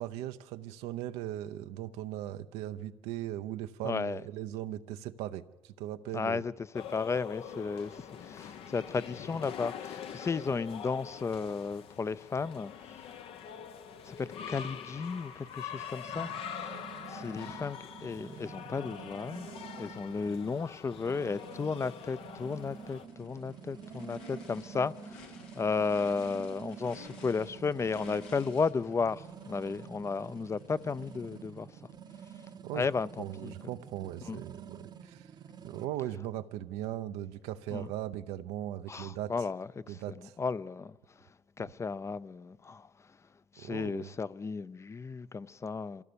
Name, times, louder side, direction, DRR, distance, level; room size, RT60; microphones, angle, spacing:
voice 1, 0.0-6.4 32.6-32.9 33.2-35.3 35.6-39.3 39.9-40.3 41.6-41.7 43.6-44.1, right 13 dB, 90° right, 0.7 m, -38 dB
voice 2, 3.8-4.2 6.1-13.1 14.0-19.5 19.8-31.9 32.7-33.5 34.3-34.4 37.7-37.9 38.9-41.3 41.6-43.2 43.5-46.0, left 5 dB, 30° left, 0.6 m, -34 dB
sound 1, 6.7-23.1, left 8 dB, 70° left, 1.0 m, -44 dB
sound 2, 16.0-35.9, right 7 dB, 45° right, 0.8 m, -48 dB
Race car auto racing / Idling / Accelerating revving vroom, 22.3-31.7, left 6 dB, 85° left, 1.8 m, -54 dB
24.5 x 15.5 x 6.9 m
supercardioid pair, 80°, 10 cm